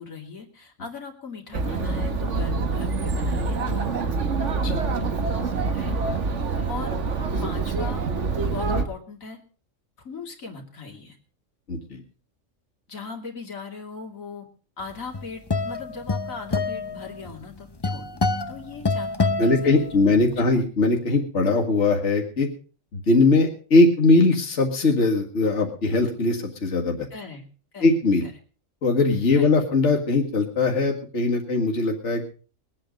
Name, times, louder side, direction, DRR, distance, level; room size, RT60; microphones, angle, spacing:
voice 1, 0.0-4.0 5.7-6.0 6.7-7.0 7.4-8.1 8.4-9.4 10.0-11.2 12.9-14.5 14.8-20.5 27.1-27.4 27.7-27.9 28.2-28.3 29.3-29.5, left 4 dB, 90° left, 1 dB, 3.1 m, -39 dB
Chatter, 1.5-8.9, right 4 dB, 60° right, 1.7 m, -26 dB
voice 2, 11.7-12.0 19.4-22.5 22.9-27.1 27.8-28.2 28.8-32.3, left 3 dB, 60° left, 1 dB, 2.2 m, -20 dB
sound 1, 14.9-20.3, left 3 dB, 25° left, 0.7 m, -27 dB
21.5 x 8.8 x 5.2 m, 0.40 s
omnidirectional pair, 1.4 m